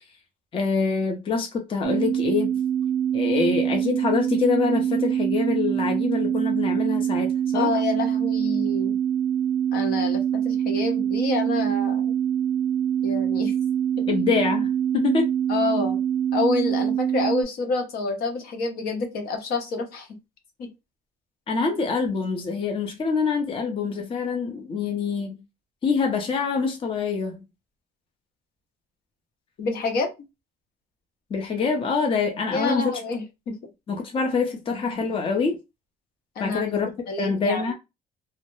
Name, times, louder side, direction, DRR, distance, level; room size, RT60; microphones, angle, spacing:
voice 1, 0.5-2.5 3.1-7.7 14.1-15.3 21.5-25.4 25.8-27.4 31.3-33.0 33.9-35.6 36.4-36.9 37.2-37.7, left 5 dB, 30° left, 0.5 m, -25 dB
sound 1, 1.8-17.4, right 9 dB, 75° right, 0.5 m, -24 dB
voice 2, 7.5-9.0 9.7-10.2 10.4-12.1 13.0-13.5 15.5-16.0 16.3-20.1 20.6-20.7 29.6-30.1 32.5-33.5 36.4-36.8 37.1-37.7, left 3 dB, 65° left, 0.7 m, -28 dB
2.2 x 2.0 x 2.9 m
cardioid pair, 110°, 17 cm